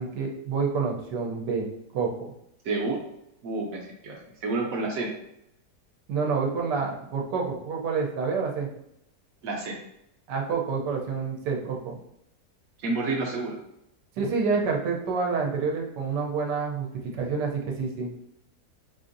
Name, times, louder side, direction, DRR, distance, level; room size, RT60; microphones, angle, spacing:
voice 1, 0.0-1.7 1.9-2.1 6.1-8.7 10.3-12.0 14.2-18.1, right 5 dB, 85° right, 0 dB, 1.3 m, -28 dB
voice 2, 2.6-3.0 3.4-5.1 9.4-9.8 12.8-13.6, right 3 dB, 65° right, 0 dB, 1.0 m, -29 dB
4.4 x 2.5 x 2.6 m, 0.78 s
omnidirectional pair, 1.8 m